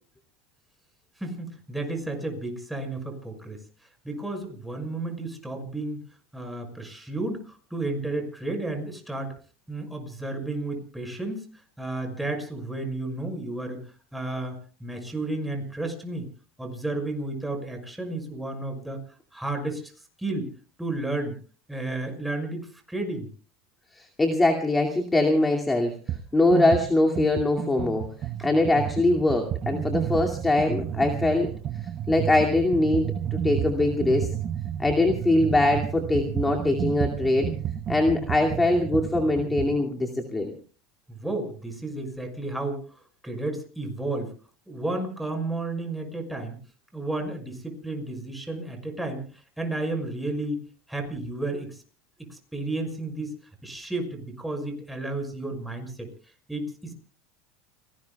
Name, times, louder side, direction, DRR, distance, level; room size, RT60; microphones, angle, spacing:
voice 1, 1.2-3.6 4.0-6.0 6.3-9.3 9.7-11.4 11.8-13.8 14.1-16.3 16.6-19.0 19.3-19.9 20.2-20.5 20.8-21.3 21.7-23.3 28.4-28.5 41.1-42.8 43.2-44.3 44.7-46.6 46.9-50.6 50.9-51.8 52.3-53.4 53.6-56.1 56.5-56.9, right 2 dB, 5° right, 4 dB, 5.7 m, -32 dB
voice 2, 24.0-28.1 28.4-31.5 32.1-34.3 34.8-37.5 37.9-40.5, left 2 dB, 15° left, 2 dB, 2.4 m, -23 dB
sound 1, 26.1-26.2 26.5-39.8, right 10 dB, 40° right, 0.8 m, -31 dB
30.0 x 18.0 x 2.3 m, 0.40 s
supercardioid pair, 125°, 0 cm